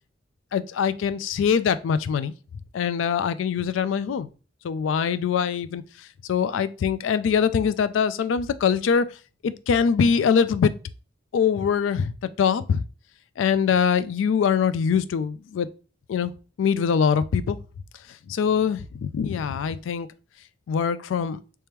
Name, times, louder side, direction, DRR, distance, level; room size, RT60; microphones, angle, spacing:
voice 1, 0.5-2.3 2.7-4.3 4.6-5.8 6.3-9.1 9.4-10.7 11.3-12.1 12.4-12.8 13.4-15.7 16.1-16.3 16.6-17.6 18.3-20.1 20.7-21.4, left 6 dB, 90° left, 0.3 m, -23 dB
3.4 x 3.3 x 3.0 m
head